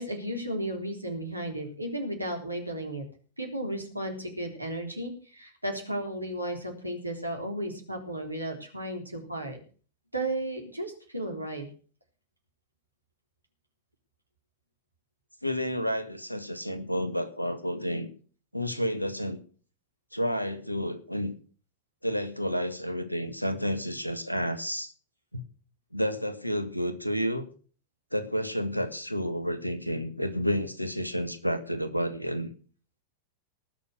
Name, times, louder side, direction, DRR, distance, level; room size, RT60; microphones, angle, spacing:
voice 1, 0.0-3.0 3.4-9.6 10.1-11.7, right 1 dB, 85° right, 2 dB, 3.7 m, -34 dB
voice 2, 15.4-18.1 18.5-19.4 20.1-21.3 22.0-24.9 25.3-25.4 25.9-27.4 28.1-32.5, equal, 90° left, 12 dB, 1.5 m, -30 dB
19.0 x 6.7 x 6.5 m, 0.40 s
figure-of-eight pair, 90°, 0 cm